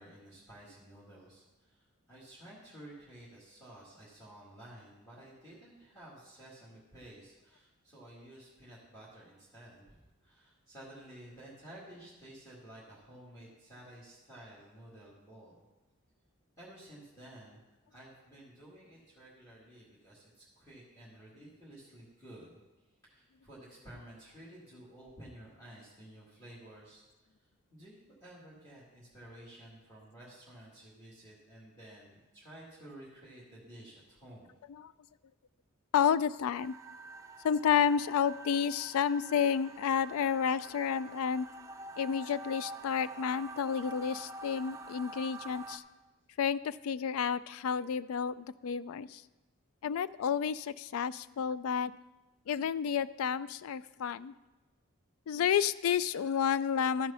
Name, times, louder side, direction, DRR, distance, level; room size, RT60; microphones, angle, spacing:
voice 1, 0.0-15.6 16.6-17.6 17.9-22.6 23.0-27.0 27.7-34.5, right 1 dB, 15° left, -7 dB, 1.9 m, -53 dB
voice 2, 35.9-36.7 37.4-41.5 42.0-45.8 46.4-49.2 49.8-51.9 52.5-54.3 55.3-57.1, left 7 dB, 75° left, 16 dB, 0.3 m, -30 dB
sound 1, 36.6-45.8, right 2 dB, 15° right, 0.4 m, -47 dB
12.5 x 4.7 x 5.6 m, 1.1 s
head